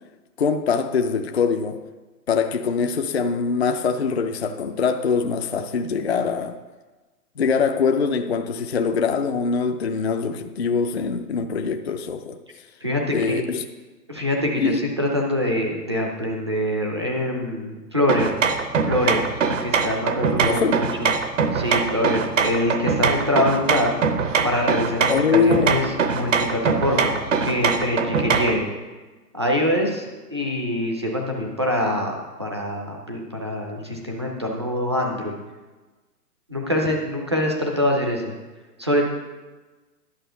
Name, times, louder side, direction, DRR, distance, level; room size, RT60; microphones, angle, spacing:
voice 1, 0.4-1.8 2.3-6.6 7.4-12.4 13.1-13.6 14.6-14.8 20.2-20.8 25.1-25.7, left 5 dB, 45° left, 6 dB, 0.5 m, -23 dB
voice 2, 12.8-13.5 14.1-18.3 18.9-21.1 21.5-23.9 24.4-28.7 29.3-32.1 32.4-35.4 36.5-38.3 38.8-39.0, left 1 dB, 20° right, 0 dB, 0.5 m, -24 dB
sound 1, 18.1-28.6, right 5 dB, 50° right, 0.9 m, -23 dB
11.5 x 6.8 x 5.5 m, 1.2 s
hypercardioid pair, 170°, 49 cm